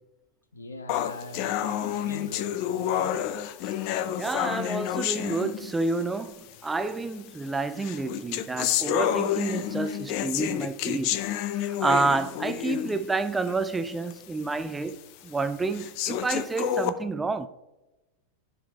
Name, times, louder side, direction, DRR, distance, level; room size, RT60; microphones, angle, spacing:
voice 1, 0.5-3.2, left 2 dB, 75° left, 0.8 m, -42 dB
sound 1, 0.9-6.0 6.9-7.0 7.8-13.0 13.5-13.6 14.1-14.2 14.9-15.0 15.7-16.9, left 11 dB, 45° left, 0.5 m, -29 dB
voice 2, 4.2-6.3 6.6-11.2 11.5-15.0 15.2-17.5, right 3 dB, 10° right, 0.4 m, -29 dB
13.0 x 4.9 x 2.4 m
figure-of-eight pair, 90°, 0 cm